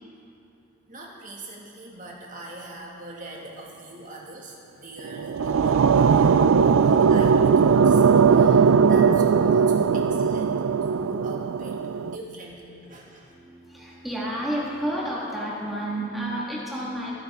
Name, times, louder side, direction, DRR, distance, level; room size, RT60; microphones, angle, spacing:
voice 1, 0.9-13.4, right 2 dB, 40° right, -2 dB, 2.0 m, -41 dB
sound 1, 5.0-12.2, right 6 dB, 80° right, 0.4 m, -19 dB
voice 2, 13.3-17.1, right 1 dB, ahead, -7 dB, 1.7 m, -32 dB
22.0 x 9.5 x 3.6 m, 2.6 s
head